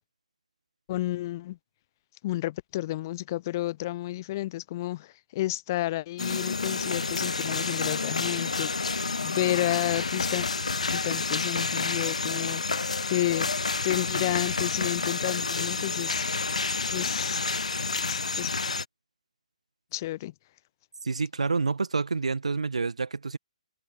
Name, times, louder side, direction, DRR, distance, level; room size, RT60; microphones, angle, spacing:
voice 1, 0.9-1.6 2.2-10.5 10.9-13.5 13.8-16.3 16.9-17.4 18.1-18.5 19.9-20.3, left 16 dB, 30° left, 0.9 m, -31 dB
sound 1, 6.2-18.9, left 4 dB, 70° left, 0.4 m, -29 dB
voice 2, 21.0-23.4, right 4 dB, 65° right, 1.8 m, -28 dB
figure-of-eight pair, 135°, 4 cm